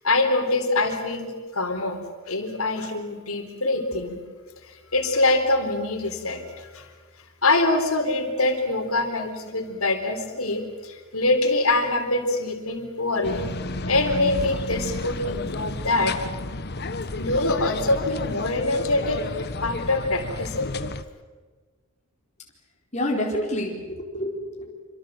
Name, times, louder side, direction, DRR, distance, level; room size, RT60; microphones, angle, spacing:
voice 1, 0.0-2.0 2.3-4.2 4.7-6.9 7.4-13.5 13.9-16.1 17.2-20.7, left 2 dB, 80° left, 5 dB, 4.2 m, -24 dB
sound 1, 13.2-21.0, left 2 dB, 50° left, 1.2 m, -31 dB
voice 2, 22.9-24.7, left 1 dB, 30° left, -1 dB, 4.4 m, -28 dB
27.5 x 26.0 x 7.8 m, 1.4 s
head